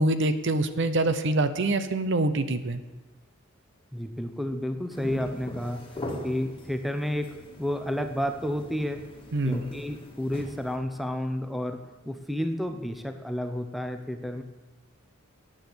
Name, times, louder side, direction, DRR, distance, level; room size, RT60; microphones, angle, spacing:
voice 1, 0.0-2.8 9.3-9.6, right 2 dB, 60° right, 11 dB, 0.8 m, -25 dB
voice 2, 3.9-5.8 6.2-7.3 7.6-9.0 9.4-11.8 12.0-14.4, left 1 dB, ahead, 7 dB, 0.8 m, -31 dB
sound 1, 4.9-10.8, equal, 25° left, 2.0 m, -40 dB
9.8 x 8.6 x 8.0 m, 1.1 s
head